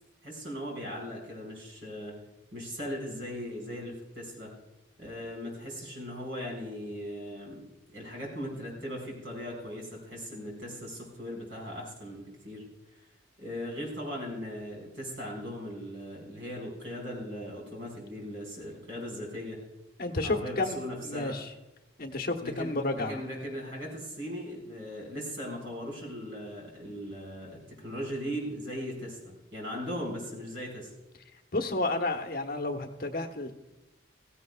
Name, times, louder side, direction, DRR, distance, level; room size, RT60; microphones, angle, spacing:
voice 1, 0.2-2.1 2.5-4.5 5.0-7.6 7.9-12.6 13.0-13.1 13.4-19.6 20.2-21.4 22.4-30.9, equal, 70° right, 0 dB, 4.7 m, -38 dB
voice 2, 20.0-20.8 21.0-21.5 22.0-23.2 31.5-33.5, left 2 dB, 45° left, 5 dB, 1.0 m, -31 dB
15.5 x 15.5 x 2.3 m, 1.0 s
head